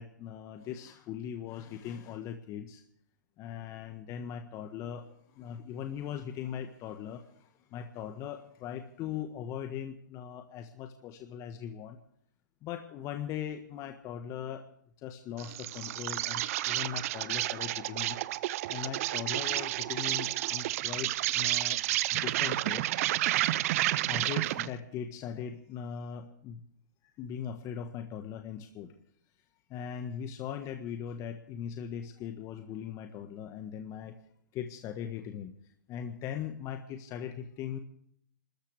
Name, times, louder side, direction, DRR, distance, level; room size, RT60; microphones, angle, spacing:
voice 1, 0.0-2.8 3.4-12.0 12.6-14.7 15.0-18.2 18.7-21.8 22.1-22.9 23.8-26.6 27.0-28.9 29.7-34.2 34.5-35.5 35.9-37.8, left 8 dB, 30° left, 6 dB, 1.4 m, -40 dB
Insect, 15.4-24.8, right 16 dB, 50° right, 0.6 m, -31 dB
28.5 x 13.5 x 3.4 m, 0.66 s
hypercardioid pair, 115°, 10 cm